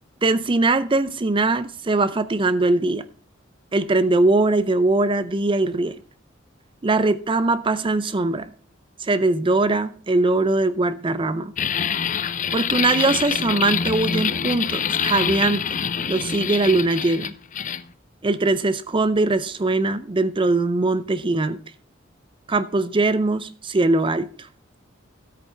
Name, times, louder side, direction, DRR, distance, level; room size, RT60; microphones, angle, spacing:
voice 1, 0.2-3.1 3.7-6.0 6.8-8.5 9.0-11.5 12.5-15.8 16.1-17.3 18.2-21.6 22.5-24.5, right 2 dB, 25° right, 0.5 m, -21 dB
sound 1, 11.6-17.8, left 7 dB, 40° left, 0.5 m, -25 dB
13.5 x 8.7 x 3.4 m
head